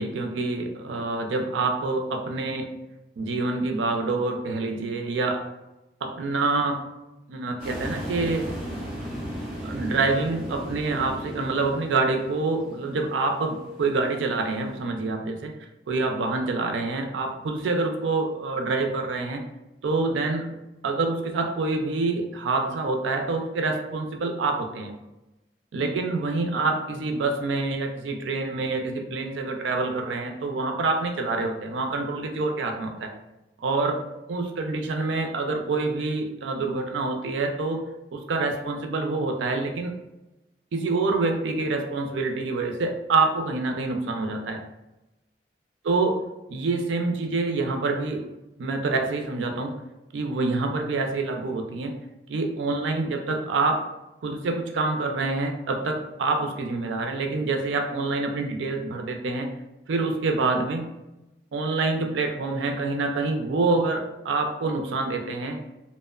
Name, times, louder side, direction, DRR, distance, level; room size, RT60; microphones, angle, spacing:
voice 1, 0.0-2.7 3.2-5.4 6.0-6.9 7.3-8.5 9.6-15.6 15.9-19.4 19.8-20.5 20.8-24.9 25.7-33.1 33.6-34.0 34.3-37.8 38.1-39.9 40.7-44.6 45.8-48.3 48.6-49.8 50.1-52.0 52.3-53.9 54.2-59.5 59.9-60.9 61.5-65.6, right 3 dB, 90° right, 4 dB, 0.4 m, -26 dB
sound 1, 7.6-14.8, equal, 5° left, 1.1 m, -36 dB
2.8 x 2.0 x 2.3 m, 0.97 s
head